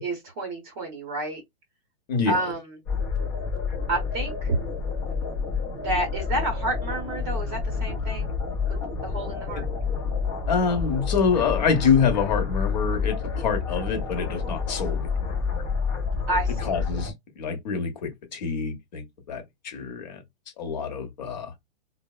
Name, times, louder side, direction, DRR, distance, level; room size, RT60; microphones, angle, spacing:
voice 1, 0.0-1.4 2.3-2.8 3.9-4.6 5.8-8.3 8.7-8.8 9.0-9.6 16.3-16.8, right 1 dB, 20° right, 0.7 m, -29 dB
sound 1, 2.9-17.1, left 5 dB, 20° left, 0.4 m, -29 dB
voice 2, 10.5-15.4 16.6-20.2 20.6-21.5, left 6 dB, 40° left, 0.8 m, -26 dB
4.3 x 2.0 x 2.2 m
hypercardioid pair, 165°, 33 cm